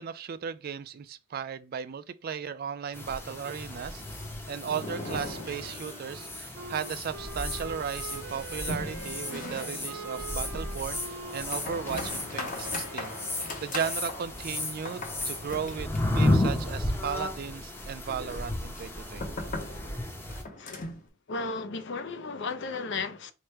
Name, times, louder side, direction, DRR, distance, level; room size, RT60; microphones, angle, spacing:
voice 1, 0.0-4.0 4.5-13.1 13.6-19.5, right 7 dB, 45° right, 0.3 m, -36 dB
sound 1, 2.9-20.4, left 1 dB, 10° left, 0.7 m, -33 dB
sound 2, 3.9-6.2 6.5-6.6 6.9-7.0 7.4-21.1, left 2 dB, 40° left, 0.9 m, -41 dB
Wind instrument woodwind instrument, 4.8-13.7, right 4 dB, 90° right, 1.0 m, -44 dB
voice 2, 20.6-20.9 21.3-23.3, left 4 dB, 55° left, 0.5 m, -34 dB
4.8 x 2.2 x 4.4 m
head